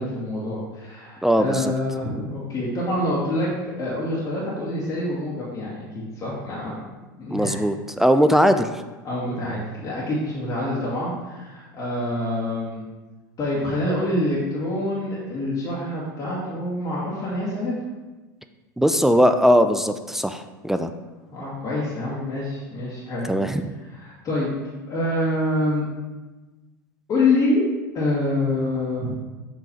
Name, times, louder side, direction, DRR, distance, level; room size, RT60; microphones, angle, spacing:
voice 1, 0.0-3.5 3.8-6.9 7.2-7.6 9.0-12.8 13.4-17.7 21.3-23.3 23.9-24.5 24.9-25.8 27.1-27.6 27.9-29.1, left 1 dB, 35° left, -7 dB, 2.0 m, -26 dB
voice 2, 1.2-1.7 7.3-8.7 18.8-20.9 23.3-23.7, equal, 5° right, 8 dB, 0.3 m, -19 dB
7.4 x 3.8 x 4.3 m, 1.2 s
hypercardioid pair, 95°, 11 cm